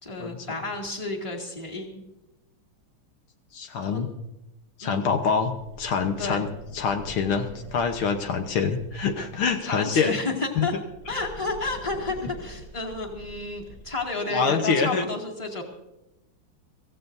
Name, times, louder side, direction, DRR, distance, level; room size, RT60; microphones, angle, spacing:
voice 1, 0.0-2.0 3.8-4.1 4.8-5.2 6.2-6.4 9.7-10.7 11.1-15.6, left 2 dB, 15° left, -1 dB, 2.2 m, -31 dB
voice 2, 3.5-4.1 4.8-6.5 6.7-10.1 10.6-10.7 14.3-15.1, left 5 dB, 75° left, 6 dB, 1.8 m, -25 dB
sound 1, 5.3-9.7 10.6-14.3, right 1 dB, 55° left, 4.5 m, -45 dB
24.0 x 15.5 x 2.7 m, 0.94 s
omnidirectional pair, 2.4 m